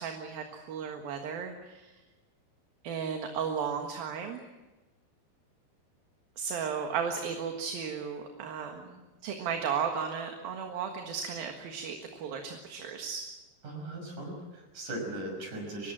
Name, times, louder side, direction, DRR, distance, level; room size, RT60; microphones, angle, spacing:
voice 1, 0.0-1.9 2.8-4.4 6.4-13.2, right 6 dB, 65° right, 4 dB, 3.3 m, -35 dB
voice 2, 13.6-15.9, right 1 dB, 50° right, 3 dB, 7.3 m, -38 dB
24.0 x 20.5 x 7.6 m, 1.2 s
omnidirectional pair, 4.7 m